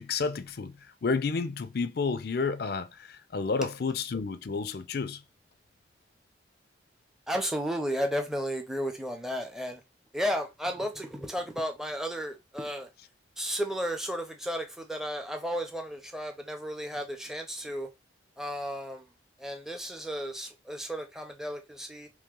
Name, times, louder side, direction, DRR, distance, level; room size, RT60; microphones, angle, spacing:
voice 1, 0.0-5.2, left 4 dB, 50° left, 0.4 m, -31 dB
voice 2, 7.3-9.8 10.1-12.9 13.4-17.9 18.4-19.0 19.4-22.1, equal, ahead, 0.6 m, -33 dB
3.1 x 3.0 x 3.7 m
head